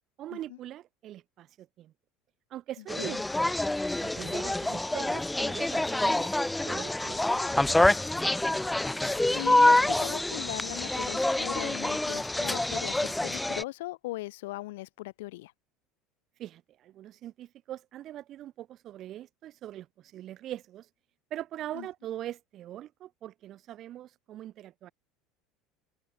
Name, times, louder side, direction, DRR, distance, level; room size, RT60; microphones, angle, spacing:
voice 1, 0.2-1.9 2.5-3.6 4.0-8.0 16.4-20.9 21.3-24.9, right 12 dB, 50° right, 5.6 m, -42 dB
sound 1, 2.9-13.6, left 1 dB, 10° left, 1.5 m, -26 dB
voice 2, 9.0-15.5 21.7-21.9, left 19 dB, 90° left, 4.0 m, -39 dB
supercardioid pair, 105°, 0 cm